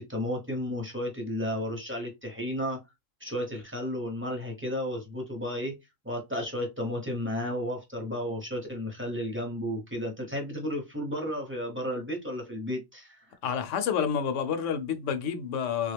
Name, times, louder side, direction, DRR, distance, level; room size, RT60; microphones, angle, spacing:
voice 1, 0.0-2.8 3.2-5.8 6.0-13.3, left 1 dB, 10° right, 0.7 m, -33 dB
voice 2, 13.4-15.9, left 7 dB, 70° left, 0.9 m, -29 dB
3.5 x 2.3 x 3.3 m
omnidirectional pair, 1.4 m